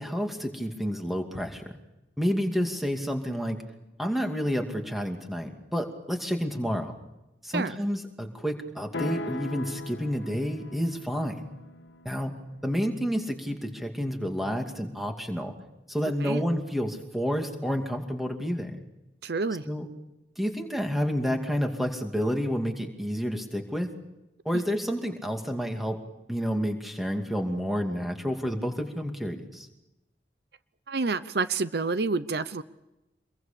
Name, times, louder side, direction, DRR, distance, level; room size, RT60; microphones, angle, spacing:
voice 1, 0.0-1.7 2.2-3.6 4.0-6.9 7.4-11.5 12.0-12.3 12.6-15.5 15.9-18.8 19.6-19.9 20.4-23.9 24.4-26.0 26.3-29.7, equal, ahead, 3 dB, 2.5 m, -29 dB
sound 1, 8.9-13.0, left 1 dB, 85° left, 2.0 m, -39 dB
voice 2, 19.2-19.7 24.5-24.6 30.9-32.6, right 3 dB, 65° right, 14 dB, 0.7 m, -28 dB
26.5 x 22.5 x 6.9 m, 0.95 s
head